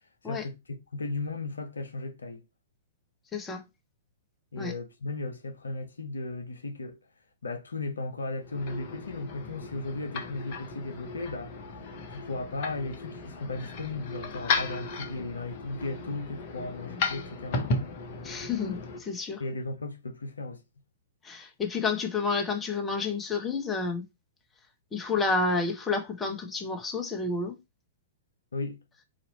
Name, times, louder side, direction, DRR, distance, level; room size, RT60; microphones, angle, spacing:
voice 1, 0.2-2.4 4.5-7.0 7.4-11.8 12.1-17.7 19.4-20.6 28.5-28.8, left 3 dB, 75° left, 0.7 m, -36 dB
voice 2, 3.3-3.6 4.6-4.7 18.2-19.4 21.2-24.0 24.9-27.6, left 4 dB, 15° left, 1.0 m, -30 dB
sound 1, 8.4-19.0, left 3 dB, 40° left, 1.0 m, -35 dB
4.1 x 2.8 x 4.1 m
figure-of-eight pair, 105°, 0 cm